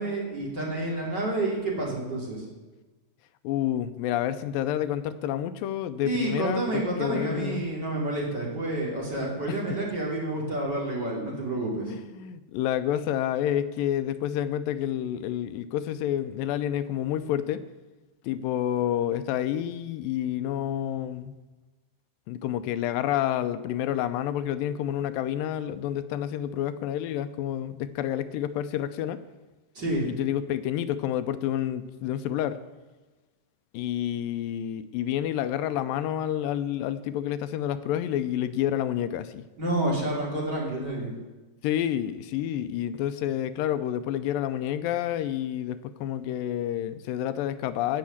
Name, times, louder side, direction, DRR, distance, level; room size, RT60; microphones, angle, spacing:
voice 1, 0.0-2.4 6.0-11.9 29.7-30.1 39.6-41.1, right 2 dB, 30° right, -3 dB, 3.1 m, -29 dB
voice 2, 3.4-7.7 9.5-9.6 11.9-17.6 18.2-21.4 22.3-29.2 30.0-32.6 33.7-39.4 41.6-48.0, left 11 dB, 85° left, 12 dB, 2.3 m, -29 dB
16.5 x 5.7 x 7.2 m, 1.2 s
omnidirectional pair, 4.0 m